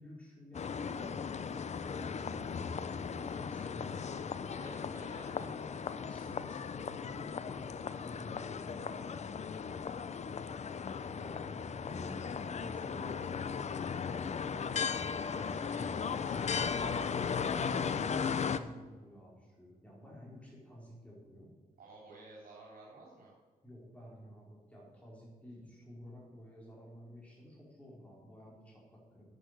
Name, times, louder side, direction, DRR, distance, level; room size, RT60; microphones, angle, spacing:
voice 1, 0.0-1.3 1.9-4.5 5.2-9.6 11.8-13.6 17.4-21.5 23.6-29.2, left 1 dB, 10° left, -4 dB, 4.1 m, -52 dB
sound 1, 0.5-18.6, left 6 dB, 45° left, 0.7 m, -37 dB
voice 2, 4.6-6.0 11.0-11.5 15.4-16.8 21.8-23.3, right 2 dB, 70° right, -5 dB, 3.5 m, -54 dB
10.0 x 8.0 x 7.9 m, 1.4 s
cardioid pair, 95°, 16 cm